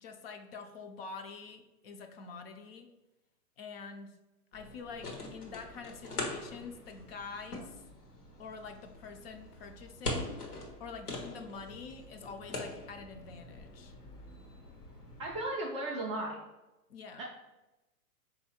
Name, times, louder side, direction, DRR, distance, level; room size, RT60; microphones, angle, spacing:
voice 1, 0.0-2.9 3.6-4.1 4.5-7.8 8.4-10.4 10.8-13.9 16.9-17.2, left 5 dB, 45° left, 6 dB, 0.5 m, -46 dB
sound 1, 4.5-15.4, left 2 dB, 90° left, 1.2 m, -43 dB
voice 2, 15.2-16.4 17.2-17.3, right 1 dB, 25° right, -4 dB, 0.3 m, -35 dB
3.8 x 2.7 x 4.2 m, 1.0 s
hypercardioid pair, 125°, 45 cm